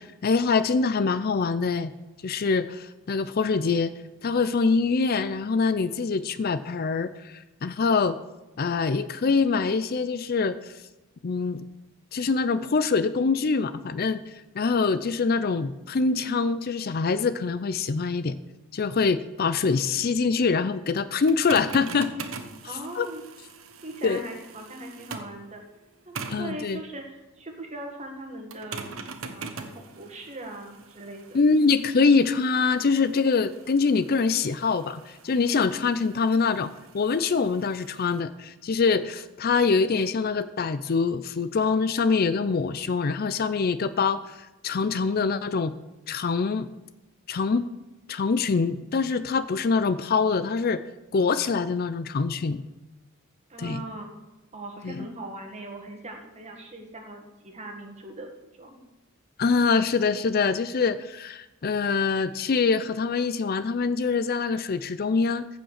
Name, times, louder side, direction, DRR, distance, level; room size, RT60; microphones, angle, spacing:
voice 1, 0.0-1.9 2.2-3.9 4.2-8.2 8.6-10.7 11.2-11.6 12.1-14.2 14.5-18.4 18.7-22.1 23.0-23.1 24.0-24.2 26.3-26.8 31.3-45.7 46.1-46.7 47.3-47.7 48.1-50.8 51.1-52.7 53.6-53.8 54.8-55.1 59.4-65.5, left 4 dB, 45° left, 14 dB, 0.4 m, -24 dB
sound 1, 21.2-25.4 26.2-26.6 28.5-38.2, right 4 dB, 70° right, 1.1 m, -43 dB
voice 2, 22.6-23.2 23.8-25.6 26.1-28.9 29.3-31.4 53.5-54.1 54.5-58.3 58.6-58.8, right 2 dB, 30° right, 2 dB, 1.9 m, -40 dB
15.0 x 5.2 x 6.5 m, 1.0 s
head